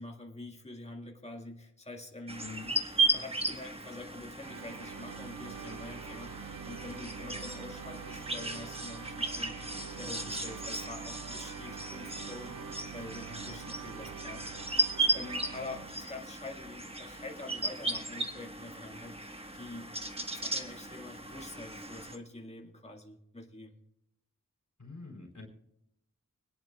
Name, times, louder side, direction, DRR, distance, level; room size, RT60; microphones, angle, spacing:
voice 1, 0.0-2.5 3.1-9.6 9.9-14.5 14.8-14.9 15.1-19.9 20.3-23.8, left 2 dB, 20° left, 0 dB, 1.9 m, -46 dB
sound 1, 2.3-22.2, right 2 dB, 15° right, 1.5 m, -36 dB
voice 2, 2.4-2.7 24.8-25.5, left 4 dB, 55° left, 0 dB, 3.8 m, -45 dB
sound 2, 4.4-16.3, right 9 dB, 70° right, 0.5 m, -46 dB
25.0 x 10.5 x 2.4 m, 0.79 s
wide cardioid pair, 70°, 33 cm